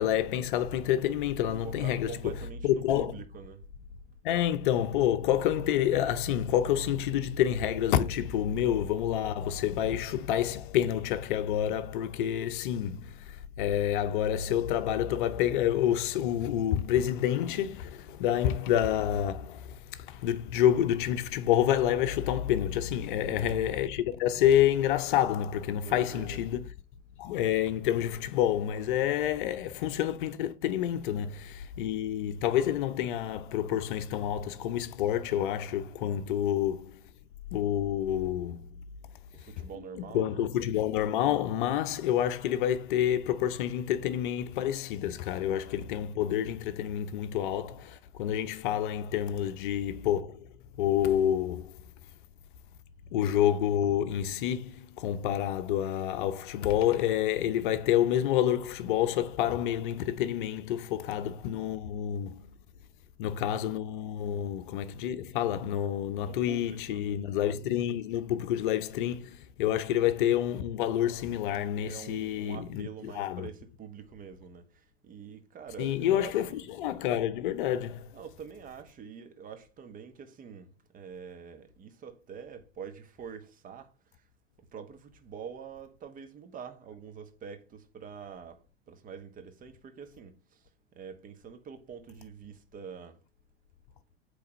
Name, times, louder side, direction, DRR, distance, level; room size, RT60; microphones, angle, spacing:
voice 1, 0.0-2.1 2.6-3.1 4.2-26.6 27.2-37.0 37.5-38.7 40.0-50.5 50.8-51.7 53.1-62.5 63.2-73.5 75.8-78.1, left 11 dB, 55° left, 0.7 m, -28 dB
voice 2, 1.6-3.7 23.2-23.6 25.8-26.4 39.3-40.4 66.2-67.3 71.8-76.7 78.1-84.3 84.7-93.2, right 7 dB, 25° right, 1.1 m, -46 dB
8.4 x 3.4 x 5.3 m
figure-of-eight pair, 85°, 31 cm